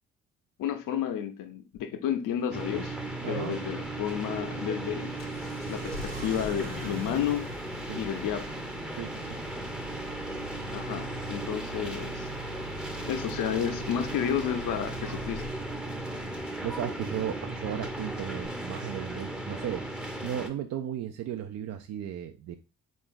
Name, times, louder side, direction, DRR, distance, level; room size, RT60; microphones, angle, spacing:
voice 1, 0.6-2.9 3.3-5.2 5.7-7.5 8.0-8.5 10.7-12.3 13.1-15.4, left 9 dB, 50° left, 7 dB, 0.7 m, -31 dB
sound 1, 2.4-10.2, equal, 80° right, 1.1 m, -46 dB
sound 2, 2.5-20.5, right 1 dB, ahead, 0.7 m, -36 dB
voice 2, 3.2-3.6 7.9-8.0 8.9-9.4 16.6-19.8 20.2-22.6, right 10 dB, 40° right, 6 dB, 0.4 m, -35 dB
Engine starting, 5.2-15.8 18.4-18.5, right 2 dB, 85° left, 0.6 m, -44 dB
4.0 x 2.6 x 3.6 m, 0.31 s
hypercardioid pair, 50°, 40 cm